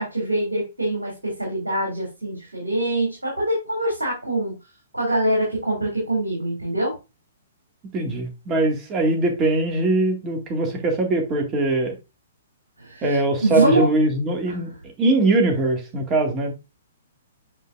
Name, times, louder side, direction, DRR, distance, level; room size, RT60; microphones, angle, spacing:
voice 1, 0.0-4.6 4.9-6.9 12.8-13.9 14.5-14.6, right 1 dB, 85° right, 2.6 m, -24 dB
voice 2, 7.9-11.9 13.0-14.7 15.0-16.5, right 2 dB, 25° right, 1.9 m, -21 dB
7.5 x 5.1 x 2.5 m
figure-of-eight pair, 120°, 0 cm